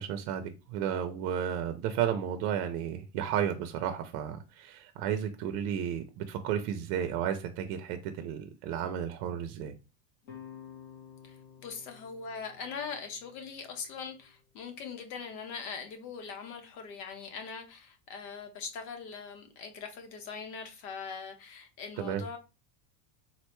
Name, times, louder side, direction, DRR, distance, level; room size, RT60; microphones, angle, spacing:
voice 1, 0.0-9.7 22.0-22.2, right 9 dB, 65° right, 0.5 m, -33 dB
sound 1, 10.2-15.4, left 8 dB, 25° left, 0.4 m, -53 dB
voice 2, 11.2-22.4, left 5 dB, 85° left, 1.0 m, -41 dB
3.9 x 2.2 x 2.9 m
supercardioid pair, 165°, 50 cm